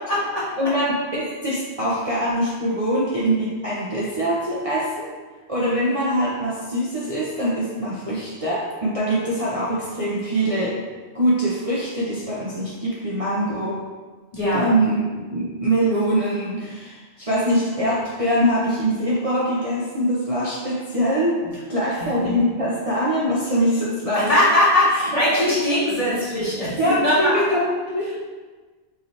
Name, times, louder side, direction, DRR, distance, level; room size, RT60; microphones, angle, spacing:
voice 1, 0.1-0.4 14.3-14.7 21.9-22.3 24.3-27.4 28.1-28.2, left 1 dB, 30° left, -9 dB, 1.4 m, -20 dB
voice 2, 0.6-5.1 5.5-10.8 11.1-13.8 14.5-21.4 21.7-24.3 25.4-25.5 26.8-27.7 27.9-28.1, equal, 35° right, -8 dB, 0.7 m, -23 dB
4.8 x 2.8 x 3.2 m, 1.3 s
omnidirectional pair, 1.2 m